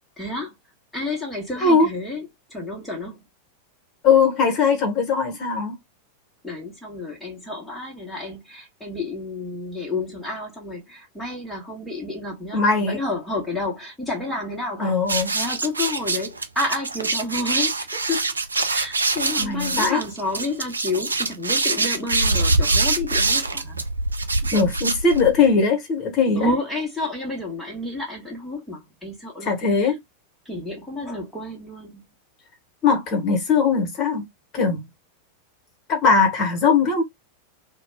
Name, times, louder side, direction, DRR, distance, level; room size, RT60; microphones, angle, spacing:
voice 1, 0.2-0.5 0.9-3.3 6.4-14.9 15.3-18.2 18.7-23.8 26.4-29.9 30.4-32.0, left 2 dB, ahead, 0.8 m, -30 dB
voice 2, 4.0-5.8 12.5-13.0 14.8-15.3 19.4-20.0 24.4-26.5 29.4-30.0 32.8-34.2 34.5-34.9 35.9-37.0, left 5 dB, 35° left, 1.0 m, -20 dB
sound 1, 15.0-25.5, right 3 dB, 80° right, 0.4 m, -24 dB
2.2 x 2.0 x 3.2 m
figure-of-eight pair, 90°, 0 cm